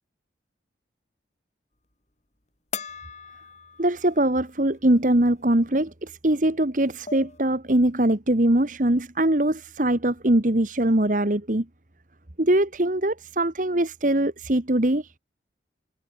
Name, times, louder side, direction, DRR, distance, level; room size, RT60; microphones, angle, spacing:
sound 1, 2.7-4.3 4.7-4.8 6.4-6.5 6.8-7.4, left 6 dB, 40° left, 3.5 m, -39 dB
voice 1, 3.8-11.7 12.4-15.1, right 1 dB, 45° right, 1.5 m, -22 dB
head